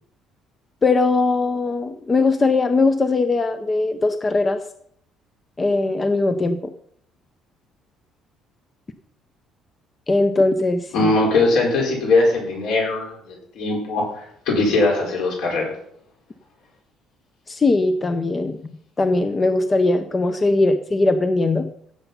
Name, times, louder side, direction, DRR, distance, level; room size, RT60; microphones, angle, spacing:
voice 1, 0.8-4.6 5.6-6.7 10.1-11.1 17.5-18.6 19.0-21.7, left 3 dB, 20° left, 9 dB, 0.5 m, -20 dB
voice 2, 10.9-15.7, left 2 dB, 65° left, -1 dB, 4.8 m, -20 dB
16.5 x 7.0 x 5.5 m, 0.67 s
cardioid pair, 175°, 0 cm